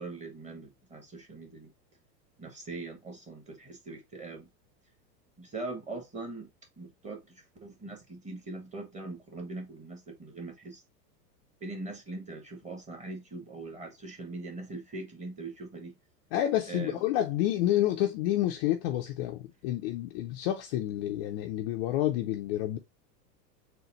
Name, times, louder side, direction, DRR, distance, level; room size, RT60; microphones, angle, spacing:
voice 1, 0.0-1.7 2.4-4.5 5.4-6.5 6.8-10.8 11.6-15.9 16.7-17.0, right 3 dB, 15° right, 1.3 m, -41 dB
voice 2, 16.3-22.8, left 13 dB, 40° left, 0.4 m, -29 dB
4.0 x 2.2 x 4.0 m
hypercardioid pair, 115°, 50 cm